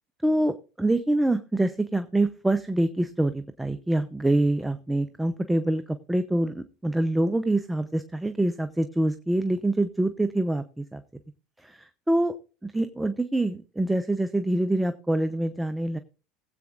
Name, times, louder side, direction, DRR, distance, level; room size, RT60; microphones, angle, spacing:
voice 1, 0.2-11.0 11.6-12.3 12.6-16.0, right 1 dB, 5° right, 10 dB, 0.8 m, -25 dB
20.5 x 8.4 x 2.5 m, 0.34 s
hypercardioid pair, 85°, 0 cm